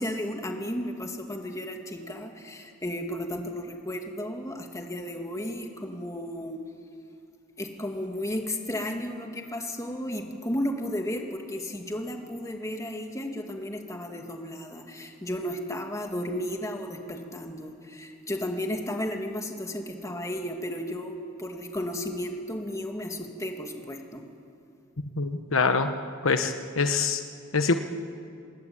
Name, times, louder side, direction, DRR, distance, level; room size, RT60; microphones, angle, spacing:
voice 1, 0.0-6.6 7.6-24.2, left 1 dB, 15° left, 3 dB, 2.4 m, -34 dB
voice 2, 25.2-25.9 26.2-27.2 27.5-27.7, left 4 dB, 70° left, 8 dB, 1.1 m, -24 dB
27.0 x 20.5 x 8.9 m, 2.4 s
head